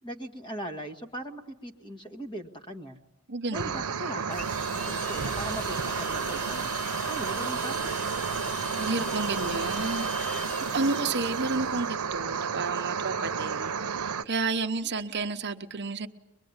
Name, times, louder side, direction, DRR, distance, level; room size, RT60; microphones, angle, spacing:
voice 1, 0.0-3.0 3.5-6.8 7.0-7.9, right 1 dB, 20° left, 5 dB, 1.7 m, -39 dB
voice 2, 3.3-3.7 8.8-10.4 10.7-16.1, right 3 dB, 50° right, 7 dB, 0.9 m, -31 dB
sound 1, 3.5-14.2, right 6 dB, 85° right, 0.9 m, -31 dB
sound 2, 4.3-11.9, left 1 dB, 40° left, 5.4 m, -39 dB
23.5 x 22.0 x 9.6 m, 0.91 s
head